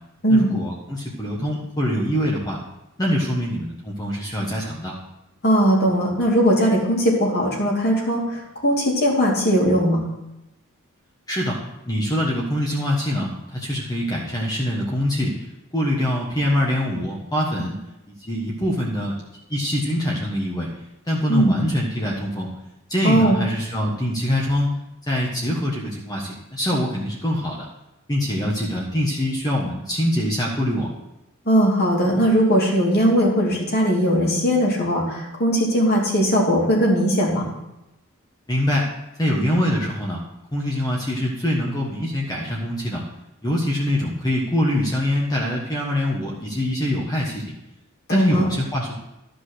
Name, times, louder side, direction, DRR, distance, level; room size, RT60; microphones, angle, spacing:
voice 1, 0.3-2.6 3.0-5.0 11.3-15.3 15.7-17.8 18.2-19.2 19.5-20.7 21.1-22.5 22.9-24.7 25.1-27.7 28.1-30.9 38.5-38.9 39.2-40.2 40.5-43.0 43.4-47.5 48.1-48.9, equal, 20° left, -3 dB, 1.3 m, -24 dB
voice 2, 5.4-10.0 21.3-21.5 23.0-23.4 31.5-37.5 48.1-48.5, equal, 50° left, -2 dB, 2.8 m, -19 dB
12.5 x 5.3 x 6.3 m, 0.92 s
head